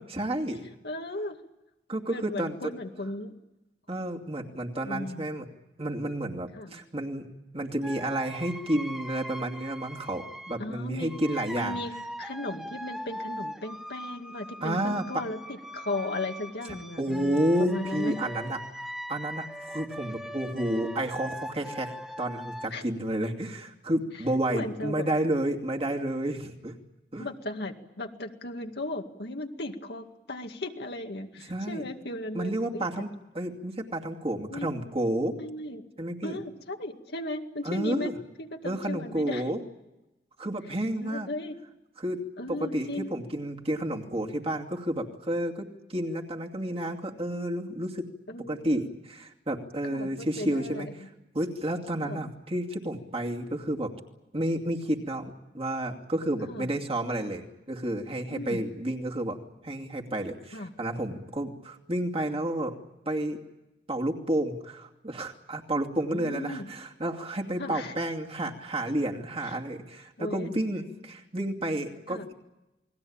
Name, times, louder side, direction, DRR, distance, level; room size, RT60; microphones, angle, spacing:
voice 1, 0.0-0.7 1.9-2.6 3.9-5.4 5.8-7.3 7.5-11.8 14.6-15.0 17.0-18.6 19.1-26.7 27.1-27.3 31.5-31.8 32.3-33.1 33.3-35.4 36.0-36.4 37.6-38.1 38.6-39.6 40.4-41.3 42.0-48.1 48.5-50.9 51.3-53.9 54.3-62.8 63.1-63.4 63.9-72.3, right 1 dB, 35° right, 1 dB, 2.6 m, -31 dB
voice 2, 0.8-1.4 2.1-3.3 4.8-5.3 6.6-6.8 10.6-11.1 11.5-11.9 12.2-18.2 22.7-22.8 24.5-25.1 27.2-32.9 34.5-34.7 35.3-35.8 36.2-38.1 38.4-39.4 41.0-41.6 42.4-43.2 48.3-48.8 49.9-51.1 52.0-52.3 56.5-56.7 58.3-58.6 60.5-60.7 66.1-66.7 67.6-67.9 70.2-70.5 72.1-72.3, left 2 dB, 65° left, 4 dB, 2.1 m, -36 dB
sound 1, 7.8-10.6 11.0-22.7, equal, ahead, 1.2 m, -40 dB
29.0 x 20.5 x 8.8 m, 0.99 s
head